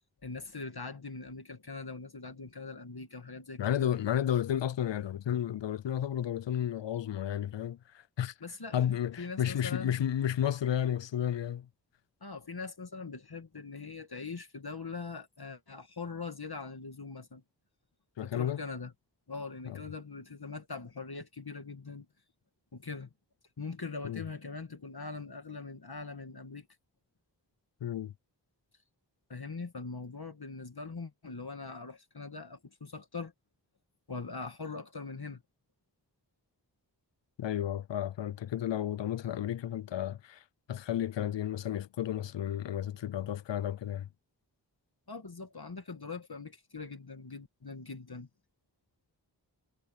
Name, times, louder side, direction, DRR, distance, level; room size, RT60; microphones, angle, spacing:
voice 1, 0.2-4.0 8.4-8.8 9.2-10.0 12.2-17.4 18.2-18.9 19.3-22.1 22.7-23.1 23.6-26.7 29.3-33.3 34.1-35.4 45.1-48.3, left 4 dB, 60° left, 2.2 m, -42 dB
voice 2, 3.6-7.8 8.2-8.3 8.7-11.7 18.2-18.6 19.7-19.8 24.0-24.2 27.8-28.1 37.4-40.4 40.7-44.1, left 10 dB, 90° left, 0.5 m, -32 dB
wide cardioid pair, 40°, 42 cm